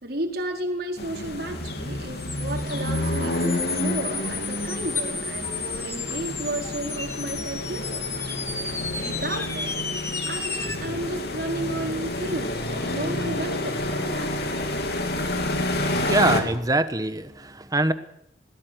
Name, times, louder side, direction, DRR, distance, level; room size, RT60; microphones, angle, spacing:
voice 1, 0.0-8.0 9.0-9.8 10.3-14.3, right 1 dB, 55° right, 1 dB, 4.0 m, -32 dB
sound 1, 1.0-16.4, left 1 dB, 60° left, 3.3 m, -29 dB
sound 2, 2.2-10.8, left 4 dB, 15° left, 1.8 m, -33 dB
voice 2, 15.7-17.9, right 2 dB, 20° right, 11 dB, 1.3 m, -24 dB
22.0 x 18.0 x 8.1 m, 0.78 s
head